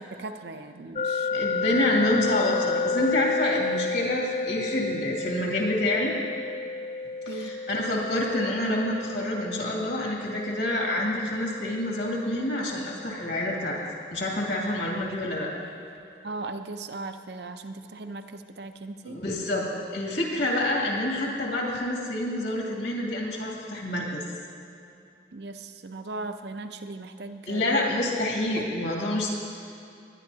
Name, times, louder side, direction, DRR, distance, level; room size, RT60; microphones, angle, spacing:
voice 1, 0.0-1.5 7.3-7.6 16.2-19.2 25.3-27.8 28.5-28.7, right 3 dB, 65° right, 8 dB, 0.6 m, -38 dB
sound 1, 1.0-13.9, left 4 dB, 35° left, 0.4 m, -32 dB
voice 2, 1.3-6.1 7.3-13.8 14.1-15.5 19.0-19.7 19.9-24.2 27.5-29.3, left 1 dB, 65° left, -2 dB, 2.4 m, -27 dB
21.0 x 10.5 x 2.8 m, 2.7 s
head